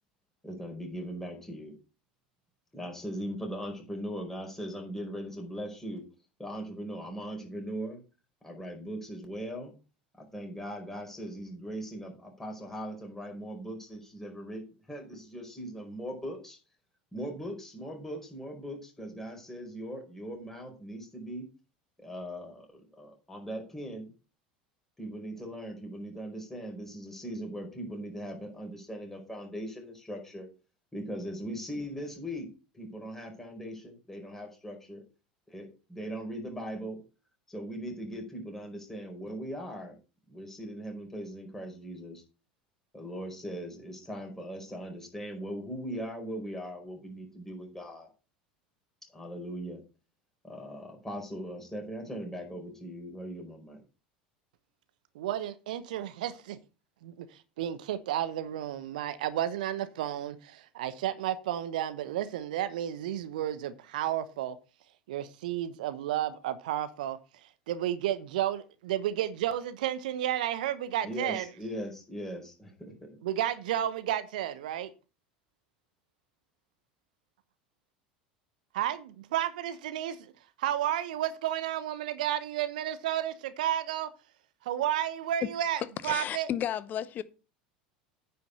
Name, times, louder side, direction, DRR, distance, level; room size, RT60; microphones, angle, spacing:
voice 1, 0.4-1.8 2.7-6.0 6.4-8.0 8.4-9.7 10.1-14.6 14.9-16.6 17.1-21.5 22.0-24.1 25.0-30.5 30.9-32.5 32.7-35.0 35.5-37.0 37.5-40.0 40.3-42.2 42.9-48.1 49.1-49.8 50.4-53.8 71.0-72.9, equal, 10° left, 5.1 m, -39 dB
voice 2, 55.1-56.6 57.0-57.3 57.6-64.6 65.1-67.2 67.7-71.5 73.2-74.9 78.7-80.2 80.6-84.1 84.6-86.5, right 11 dB, 70° right, 1.0 m, -32 dB
voice 3, 86.0-87.2, left 10 dB, 40° left, 0.8 m, -33 dB
9.5 x 5.8 x 6.6 m
figure-of-eight pair, 80°, 5 cm